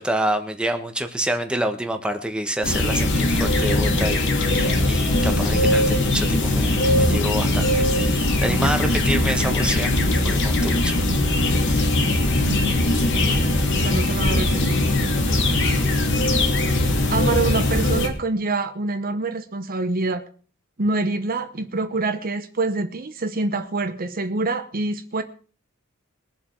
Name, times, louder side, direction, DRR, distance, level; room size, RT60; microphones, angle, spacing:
voice 1, 0.0-10.0 10.2-11.0, right 1 dB, 5° right, 1.4 m, -27 dB
sound 1, 2.6-18.1, left 1 dB, 60° left, 2.4 m, -20 dB
voice 2, 13.8-14.8 17.1-20.2 20.8-25.2, right 3 dB, 45° right, 0.9 m, -25 dB
22.0 x 7.4 x 4.7 m
head